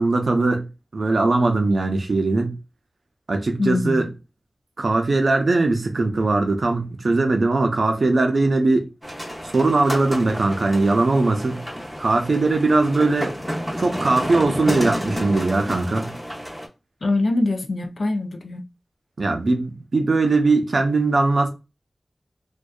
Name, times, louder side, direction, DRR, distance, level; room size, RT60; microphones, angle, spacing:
voice 1, 0.0-2.6 3.3-4.1 4.8-8.9 9.4-11.6 12.0-13.4 13.8-16.1 19.2-21.5, right 3 dB, 75° right, 0.5 m, -20 dB
voice 2, 3.6-4.1 17.0-18.6, left 2 dB, 85° left, 0.4 m, -23 dB
sound 1, 9.0-16.7, equal, ahead, 0.7 m, -30 dB
2.6 x 2.2 x 2.2 m
wide cardioid pair, 50°, 0 cm